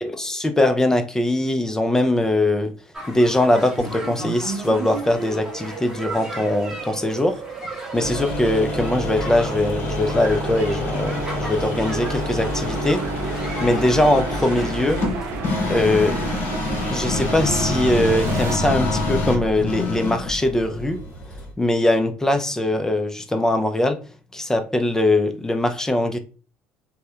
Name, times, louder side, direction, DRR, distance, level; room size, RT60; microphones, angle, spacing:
voice 1, 0.0-2.7 3.1-7.4 7.9-13.0 13.3-15.0 15.7-16.2 16.9-21.0 21.6-24.0 24.3-26.2, left 1 dB, 10° left, 0.3 m, -21 dB
sound 1, 2.9-16.5, equal, 10° right, 0.8 m, -37 dB
sound 2, 3.8-18.5, right 6 dB, 65° right, 0.4 m, -33 dB
sound 3, 7.9-21.5, left 2 dB, 55° left, 0.8 m, -27 dB
2.8 x 2.1 x 2.3 m
supercardioid pair, 85°, 5 cm